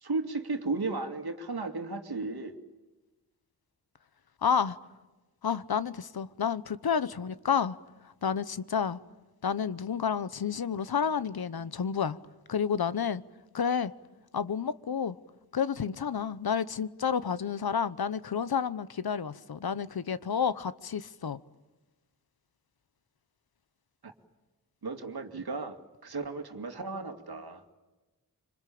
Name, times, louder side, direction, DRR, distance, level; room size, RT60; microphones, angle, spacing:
voice 1, 0.0-2.5 24.0-24.1 24.8-27.7, right 3 dB, 80° right, 2.4 m, -35 dB
voice 2, 4.4-4.8 5.4-7.8 8.2-9.0 9.4-12.2 12.5-13.2 13.5-13.9 14.3-15.2 15.5-21.4, left 7 dB, 75° left, 1.0 m, -30 dB
26.5 x 25.5 x 8.6 m
wide cardioid pair, 95°, 38 cm